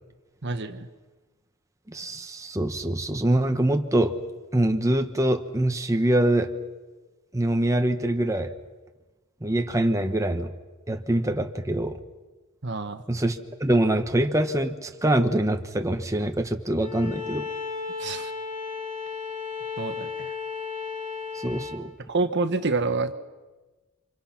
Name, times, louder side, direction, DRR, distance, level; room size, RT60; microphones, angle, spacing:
voice 1, 0.4-0.9 12.6-13.0 18.0-18.3 19.8-20.3 22.1-23.1, right 3 dB, 60° right, 9 dB, 1.3 m, -27 dB
voice 2, 1.9-4.1 4.5-6.5 7.3-8.5 9.4-10.5 10.9-12.0 13.1-17.5 21.3-21.9, right 1 dB, 15° right, 6 dB, 1.2 m, -24 dB
Bowed string instrument, 16.8-21.8, left 5 dB, 40° left, 2.9 m, -34 dB
29.0 x 26.5 x 6.0 m, 1.2 s
head